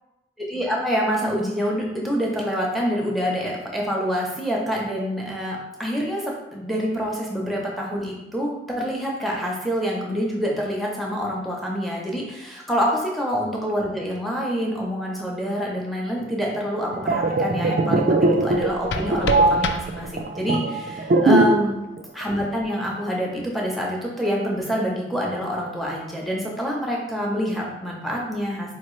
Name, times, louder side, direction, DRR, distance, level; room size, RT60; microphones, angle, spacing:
voice 1, 0.5-12.9 13.1-21.8 22.1-28.7, equal, ahead, -3 dB, 0.7 m, -26 dB
sound 1, 16.8-21.7 22.0-22.2, right 2 dB, 50° right, 0.3 m, -20 dB
sound 2, 18.5-20.5, left 4 dB, 65° left, 0.3 m, -31 dB
4.4 x 2.8 x 3.1 m, 0.97 s
head